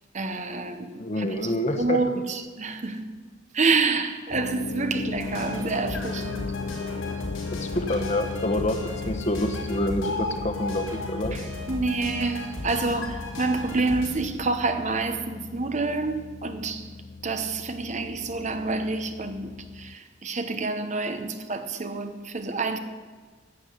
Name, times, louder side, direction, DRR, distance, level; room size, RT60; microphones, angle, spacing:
voice 1, 0.1-3.0 3.5-6.5 11.3-16.9 17.2-22.8, right 3 dB, 35° right, 0.8 m, -28 dB
voice 2, 1.0-2.0 7.5-11.4, left 1 dB, 35° left, 1.1 m, -27 dB
sound 1, 4.3-20.0, left 4 dB, 55° left, 0.4 m, -37 dB
sound 2, 5.2-14.1, left 2 dB, 90° left, 4.7 m, -35 dB
11.5 x 8.3 x 9.7 m
head